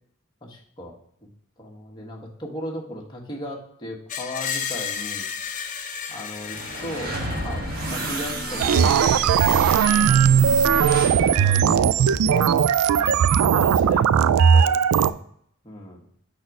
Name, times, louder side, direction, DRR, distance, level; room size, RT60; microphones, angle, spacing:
voice 1, 0.4-0.9 1.6-5.3 6.1-9.6 10.1-10.5 11.2-12.5 12.9-15.1 15.6-16.0, left 1 dB, 20° left, -2 dB, 1.3 m, -37 dB
Screech, 4.1-9.1, left 7 dB, 35° left, 0.6 m, -34 dB
sound 1, 6.4-12.7, right 1 dB, 45° right, 1.2 m, -30 dB
sound 2, 8.6-15.1, right 7 dB, 90° right, 0.3 m, -18 dB
5.2 x 4.2 x 5.9 m, 0.66 s
head